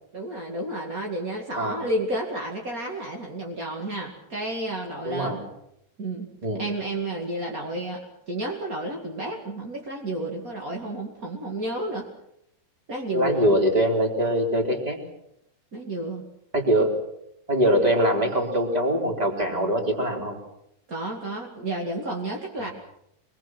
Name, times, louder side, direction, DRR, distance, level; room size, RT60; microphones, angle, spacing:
voice 1, 0.1-5.4 6.0-6.3 6.6-12.1 12.9-13.6 15.7-16.3 20.9-22.7, right 1 dB, 45° right, 0 dB, 1.1 m, -31 dB
voice 2, 5.0-5.4 6.4-6.6 13.1-15.0 16.5-16.9 17.5-20.4 22.6-22.7, right 1 dB, 10° right, 1 dB, 3.0 m, -23 dB
24.5 x 22.5 x 6.2 m, 0.77 s
omnidirectional pair, 5.6 m